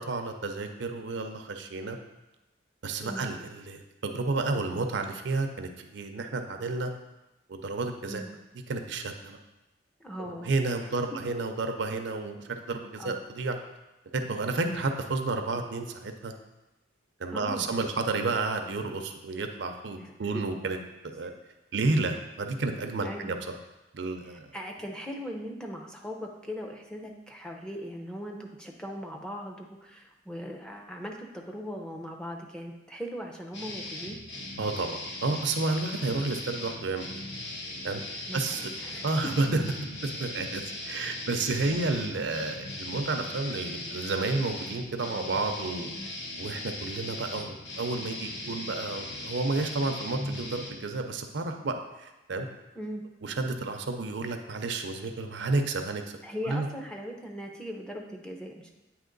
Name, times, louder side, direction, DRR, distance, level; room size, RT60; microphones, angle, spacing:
voice 1, 0.0-2.0 2.8-6.9 7.5-8.2 8.7-9.4 10.2-13.6 14.1-16.3 17.2-20.8 21.0-21.3 21.7-23.4 23.9-24.5 34.6-37.2 37.8-38.0 38.3-38.7 39.0-39.6 40.0-45.9 46.4-52.5 53.2-56.2 56.4-56.7, right 3 dB, 70° right, 6 dB, 0.5 m, -31 dB
voice 2, 10.0-10.5 10.8-11.0 13.0-13.2 14.6-14.8 17.3-17.7 20.0-20.4 23.0-23.3 24.2-34.2 36.1-36.3 38.3-39.1 41.3-41.4 41.7-41.8 52.8-53.0 56.2-58.8, equal, 5° left, 1 dB, 0.5 m, -39 dB
sound 1, 33.5-50.7, left 2 dB, 65° left, 1.1 m, -38 dB
8.6 x 2.9 x 3.8 m, 0.99 s
head